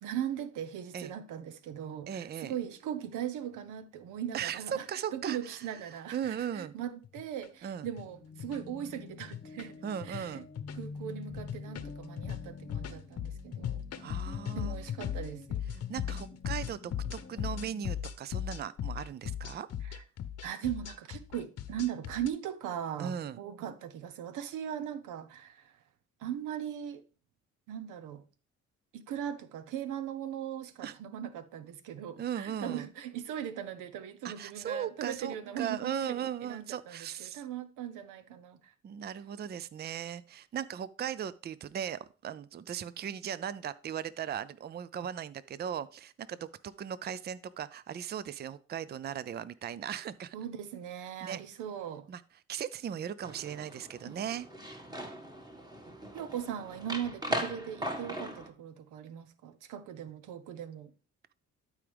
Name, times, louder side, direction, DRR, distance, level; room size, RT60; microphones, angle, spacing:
voice 1, 0.0-4.8 5.1-9.8 10.0-10.4 10.8-13.8 14.5-15.6 19.9-20.0 20.4-25.7 26.2-27.0 27.7-28.2 28.9-36.2 36.4-38.6 50.3-52.1 54.0-54.1 56.1-60.9, right 10 dB, 90° right, 0.9 m, -39 dB
voice 2, 2.1-2.5 4.3-5.6 5.9-6.7 7.6-7.9 9.8-10.5 14.0-14.8 15.7-19.7 23.0-23.4 30.8-30.9 32.2-32.9 34.2-37.4 38.8-50.4 51.2-51.4 52.1-52.2 52.5-54.5, right 9 dB, 35° right, 0.4 m, -38 dB
sound 1, 6.2-6.3 7.0-7.5 7.8-8.0 8.4-8.6 9.2-9.7 10.0-10.2 10.6-10.9 11.3-22.3, left 9 dB, 55° left, 0.8 m, -37 dB
sound 2, 8.0-17.9, left 4 dB, 30° left, 1.2 m, -48 dB
sound 3, 53.2-58.5, equal, 15° right, 1.8 m, -39 dB
12.0 x 4.8 x 3.5 m
cardioid pair, 90°, 30 cm